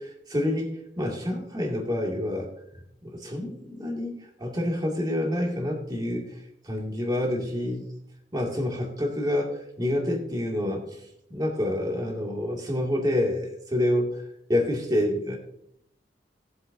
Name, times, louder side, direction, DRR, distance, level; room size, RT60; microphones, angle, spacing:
voice 1, 0.0-2.5 3.0-4.1 4.4-6.4 6.6-8.0 8.3-11.0 11.3-14.1 14.5-15.4, left 1 dB, 25° right, 0 dB, 2.2 m, -28 dB
18.0 x 7.6 x 2.6 m, 0.74 s
head